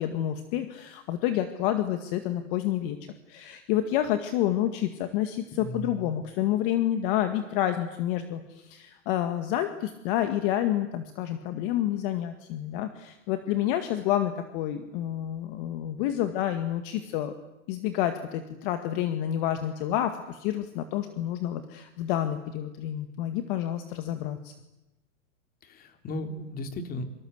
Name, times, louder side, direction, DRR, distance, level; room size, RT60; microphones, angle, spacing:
voice 1, 0.0-3.0 3.3-17.3 17.7-24.5, left 12 dB, 40° left, 8 dB, 2.0 m, -29 dB
voice 2, 5.6-6.1 25.6-27.0, left 1 dB, 20° left, 7 dB, 3.3 m, -36 dB
28.0 x 25.0 x 8.1 m, 0.97 s
supercardioid pair, 150°, 40 cm